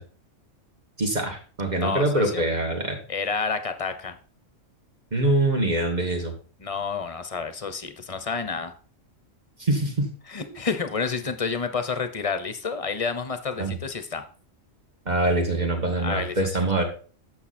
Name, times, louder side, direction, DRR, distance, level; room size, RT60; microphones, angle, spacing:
voice 1, 1.0-3.0 5.1-6.3 9.6-10.1 13.6-13.8 15.1-16.8, right 2 dB, 35° right, 2 dB, 2.0 m, -24 dB
voice 2, 1.8-2.4 3.1-4.2 6.6-8.7 10.3-14.2 16.0-16.5, left 5 dB, 35° left, 10 dB, 0.7 m, -29 dB
8.7 x 6.6 x 4.3 m, 0.40 s
omnidirectional pair, 1.3 m